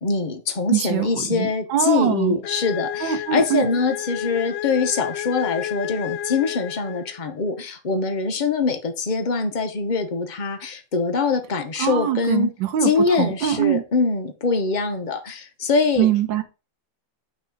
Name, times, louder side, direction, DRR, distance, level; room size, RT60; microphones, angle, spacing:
voice 1, 0.0-2.9 3.3-7.5 7.8-8.8 9.1-12.5 12.8-15.2 15.7-16.1, left 4 dB, 90° left, 6 dB, 0.4 m, -23 dB
voice 2, 0.7-2.4 3.0-3.7 11.8-13.8 16.0-16.4, right 11 dB, 75° right, 8 dB, 1.6 m, -23 dB
sound 1, 2.4-7.3, left 12 dB, 75° left, 1.2 m, -31 dB
8.7 x 3.2 x 5.2 m, 0.32 s
omnidirectional pair, 2.1 m